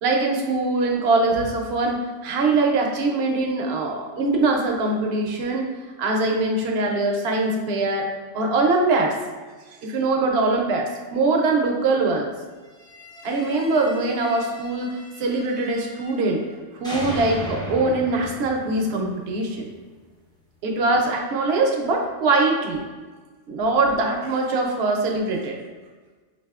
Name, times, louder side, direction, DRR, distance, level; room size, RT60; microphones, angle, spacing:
voice 1, 0.0-5.7 6.0-8.1 8.3-9.1 9.8-12.3 13.2-14.9 15.2-16.4 16.8-19.7 20.6-22.8 23.5-25.5, right 3 dB, 65° right, 1 dB, 0.8 m, -22 dB
sound 1, 12.7-16.5 16.8-19.9, equal, 5° left, 0.3 m, -37 dB
4.1 x 2.5 x 2.3 m, 1.4 s
omnidirectional pair, 1.2 m